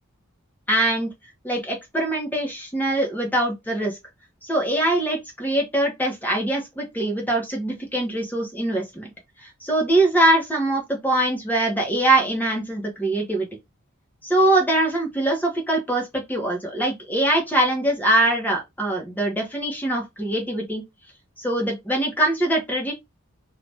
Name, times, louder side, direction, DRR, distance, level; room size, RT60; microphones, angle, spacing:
voice 1, 0.7-1.1 1.4-4.0 4.4-9.1 9.4-13.5 14.2-20.8 21.4-22.9, right 1 dB, 10° left, 0.9 m, -23 dB
2.7 x 2.4 x 3.3 m
head